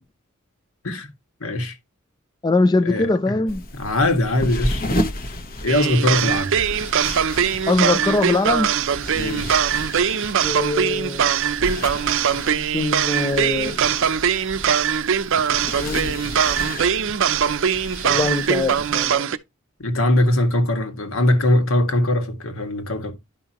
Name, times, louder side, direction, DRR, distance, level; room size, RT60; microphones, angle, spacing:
voice 1, 1.4-1.8 2.8-3.3 3.8-4.9 5.6-6.5 9.1-9.5 19.8-23.1, left 1 dB, 70° left, 1.8 m, -21 dB
voice 2, 2.4-3.6 7.7-8.7 10.4-11.3 12.4-13.8 15.4-15.5 15.8-16.2 18.0-19.3, left 2 dB, 20° left, 0.4 m, -22 dB
sound 1, 3.5-19.1, left 1 dB, 45° left, 1.1 m, -33 dB
sound 2, 5.7-19.4, right 8 dB, 65° right, 0.6 m, -21 dB
11.0 x 5.7 x 2.9 m
head